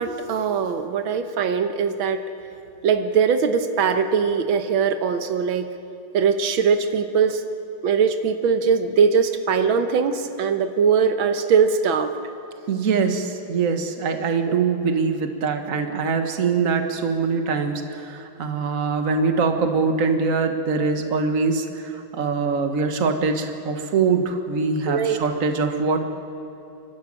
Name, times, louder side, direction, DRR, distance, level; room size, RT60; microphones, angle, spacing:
voice 1, 0.0-2.2 2.8-5.7 6.1-7.4 7.8-12.1 14.5-14.6 24.9-25.2, right 6 dB, 90° right, 8 dB, 1.8 m, -21 dB
voice 2, 12.7-26.0, right 4 dB, 45° right, 6 dB, 1.7 m, -23 dB
28.0 x 12.5 x 8.8 m, 2.7 s
omnidirectional pair, 2.1 m